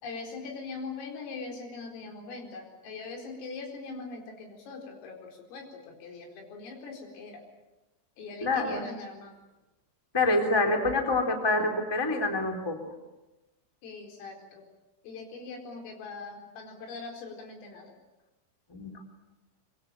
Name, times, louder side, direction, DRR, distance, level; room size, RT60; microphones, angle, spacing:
voice 1, 0.0-7.4 8.2-9.4 13.8-14.7 15.0-17.9, left 4 dB, 80° left, 2 dB, 7.0 m, -41 dB
voice 2, 8.4-8.8 10.1-12.9 18.7-19.0, left 2 dB, 5° left, 4 dB, 2.4 m, -26 dB
25.0 x 23.0 x 8.9 m, 1.0 s
omnidirectional pair, 5.8 m